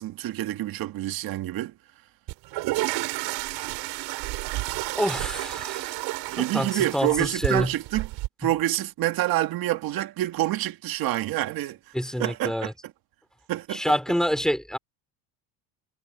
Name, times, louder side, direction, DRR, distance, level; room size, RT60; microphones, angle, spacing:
voice 1, 0.0-1.7 6.3-8.1 8.4-11.8 12.2-12.7 13.5-13.8, right 15 dB, 55° right, 1.9 m, -27 dB
sound 1, 2.3-8.3, right 20 dB, 70° right, 6.1 m, -31 dB
voice 2, 5.0-6.0 6.3-7.7 11.9-12.7 13.7-14.8, equal, ahead, 3.3 m, -27 dB
cardioid pair, 150°, 43 cm